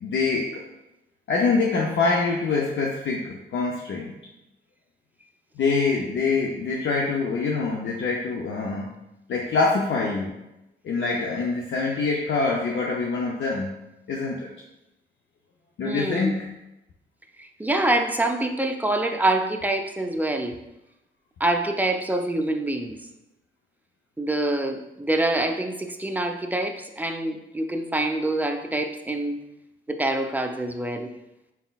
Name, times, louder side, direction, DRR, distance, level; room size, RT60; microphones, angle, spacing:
voice 1, 0.0-0.6 1.3-4.1 5.6-8.9 9.3-10.3 10.8-13.8 14.1-14.5 15.8-16.5, left 4 dB, 65° left, -1 dB, 0.5 m, -25 dB
voice 2, 15.8-16.4 17.4-20.6 21.4-23.0 24.2-29.4 29.9-31.1, right 1 dB, 10° right, 4 dB, 0.5 m, -26 dB
4.2 x 3.7 x 2.3 m, 0.92 s
cardioid pair, 60°, 21 cm